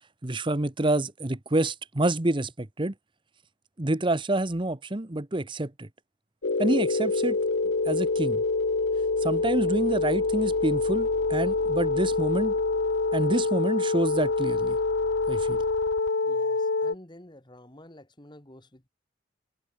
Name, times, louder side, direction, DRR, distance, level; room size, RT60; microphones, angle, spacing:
voice 1, 0.2-2.9 3.8-5.9 6.6-7.4 7.9-8.4 9.2-12.5 13.1-14.8 15.3-15.6, right 1 dB, 25° right, 1.0 m, -27 dB
sound 1, 6.4-16.9, left 3 dB, 65° left, 0.9 m, -26 dB
voice 2, 16.2-18.9, left 1 dB, 25° left, 2.2 m, -50 dB
head